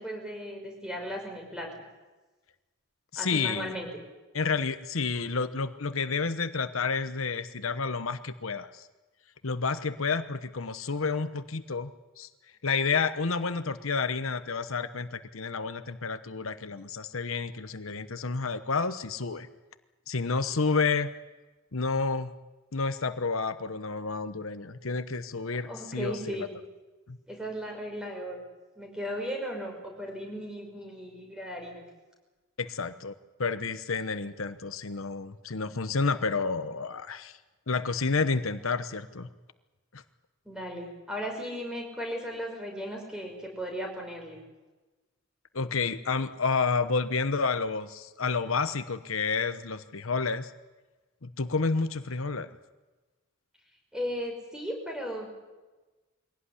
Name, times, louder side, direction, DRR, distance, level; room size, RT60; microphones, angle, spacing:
voice 1, 0.0-1.7 3.2-3.9 25.6-26.5 27.3-28.4 28.8-31.8 40.4-44.4 53.9-55.3, equal, 5° right, 1 dB, 5.8 m, -36 dB
voice 2, 3.1-3.8 4.3-8.9 9.4-11.9 12.2-12.3 12.6-19.5 20.1-21.1 21.7-22.3 22.7-26.5 27.1-27.2 32.6-33.1 33.4-37.4 37.7-39.3 39.9-40.0 45.5-50.5 51.2-52.5, left 4 dB, 80° left, 11 dB, 1.0 m, -30 dB
23.0 x 17.5 x 9.9 m, 1.2 s
head